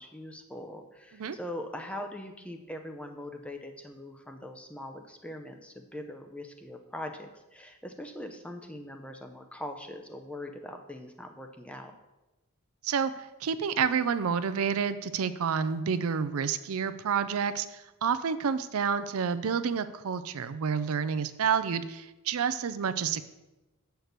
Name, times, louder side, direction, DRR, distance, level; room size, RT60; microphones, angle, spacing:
voice 1, 0.0-11.9, left 1 dB, 5° left, 5 dB, 0.6 m, -42 dB
voice 2, 13.4-23.2, right 6 dB, 75° right, 12 dB, 0.4 m, -29 dB
8.2 x 4.5 x 6.6 m, 1.0 s
head